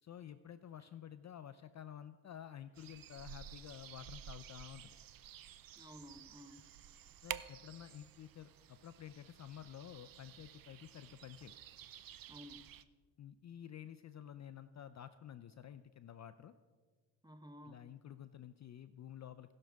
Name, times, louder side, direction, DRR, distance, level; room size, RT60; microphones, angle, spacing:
voice 1, 0.0-4.9 7.2-11.5 13.2-16.5 17.7-19.5, left 10 dB, 40° left, 12 dB, 0.5 m, -51 dB
sound 1, 2.8-12.8, right 10 dB, 50° right, 0.6 m, -52 dB
voice 2, 5.8-6.7 12.3-12.7 17.2-17.9, equal, 10° right, 9 dB, 0.8 m, -54 dB
19.5 x 6.6 x 3.5 m, 1.5 s
cardioid pair, 75°, 46 cm